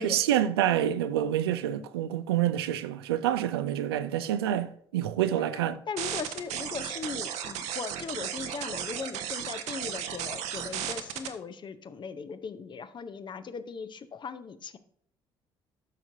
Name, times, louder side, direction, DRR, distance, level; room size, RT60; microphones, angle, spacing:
voice 1, 0.0-5.8, right 11 dB, 80° right, 0.4 m, -27 dB
voice 2, 5.5-14.8, left 5 dB, 40° left, 0.7 m, -39 dB
sound 1, 6.0-11.3, right 9 dB, 60° right, 0.9 m, -35 dB
12.5 x 5.9 x 2.7 m
hypercardioid pair, 50°, 13 cm